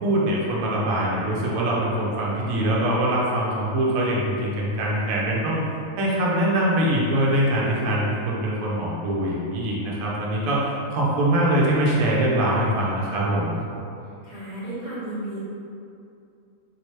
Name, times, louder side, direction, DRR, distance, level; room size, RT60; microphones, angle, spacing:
voice 1, 0.0-5.6 6.0-13.6, right 1 dB, 65° right, -5 dB, 1.0 m, -23 dB
voice 2, 14.2-15.4, right 1 dB, 45° right, -13 dB, 0.6 m, -33 dB
3.2 x 2.9 x 3.0 m, 2.6 s
omnidirectional pair, 1.7 m